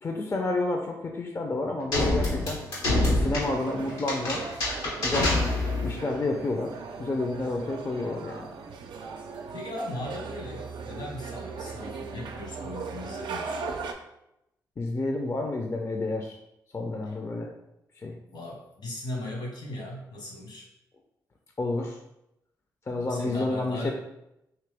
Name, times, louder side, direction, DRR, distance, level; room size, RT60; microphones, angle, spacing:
voice 1, 0.0-2.6 3.0-4.5 4.8-5.4 5.8-8.5 14.8-16.4 16.7-17.5 18.0-18.2 21.6-22.0 22.9-23.9, left 2 dB, 35° left, 2 dB, 0.5 m, -30 dB
sound 1, 1.9-6.0, left 2 dB, 90° left, 1.0 m, -26 dB
sound 2, 2.9-13.9, right 5 dB, 70° right, 0.4 m, -38 dB
voice 2, 9.5-13.6 17.1-17.2 18.3-20.7 22.9-23.9, left 1 dB, 70° left, -1 dB, 1.2 m, -38 dB
2.9 x 2.9 x 3.3 m, 0.86 s
supercardioid pair, 45°, 8 cm